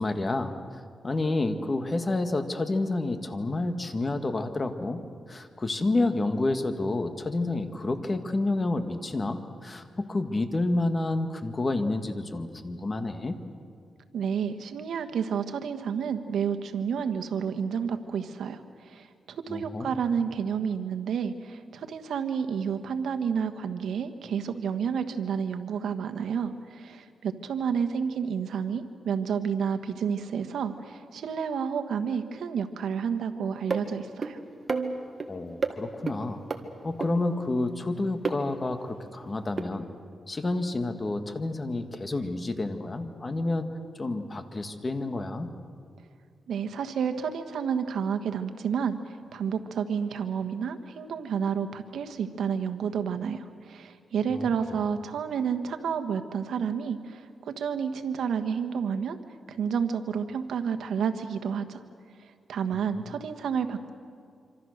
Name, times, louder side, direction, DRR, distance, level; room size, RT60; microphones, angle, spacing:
voice 1, 0.0-5.0 5.3-13.4 19.5-20.0 35.3-36.4 36.8-39.9 40.3-43.7 44.0-45.5 54.3-54.8 62.7-63.2, left 2 dB, 30° left, 7 dB, 1.8 m, -29 dB
voice 2, 14.1-18.6 18.9-34.4 46.5-49.0 49.3-59.2 59.5-61.8 62.5-63.9, right 7 dB, 85° right, 8 dB, 1.4 m, -30 dB
sound 1, 33.7-33.8 34.2-34.3 34.7-35.3 35.6-35.7 36.1-36.2 36.5-36.6 37.0-37.1 38.2-38.4 39.6-39.7, right 4 dB, 40° right, 1.8 m, -29 dB
26.0 x 26.0 x 6.6 m, 2.3 s
cardioid pair, 95°, 0 cm